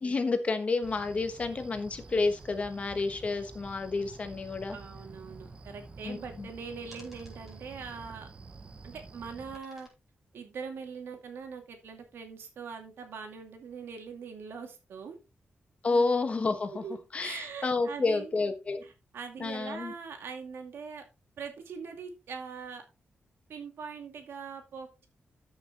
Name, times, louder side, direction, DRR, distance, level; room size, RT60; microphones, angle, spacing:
voice 1, 0.0-4.8 6.0-6.5 15.8-16.8 17.1-18.8 19.4-19.9, left 3 dB, 35° left, 8 dB, 1.3 m, -30 dB
sound 1, 0.8-9.6, right 3 dB, 30° right, 0.7 m, -49 dB
voice 2, 4.7-8.3 8.8-9.9 10.3-15.2 15.9-16.1 16.7-18.4 18.8-21.0 21.4-22.8 23.5-25.1, right 5 dB, 85° right, 5 dB, 2.3 m, -42 dB
sound 2, 6.9-8.8 9.5-9.9, left 1 dB, 5° right, 4.7 m, -58 dB
13.5 x 6.3 x 3.0 m, 0.28 s
wide cardioid pair, 170°, 4 cm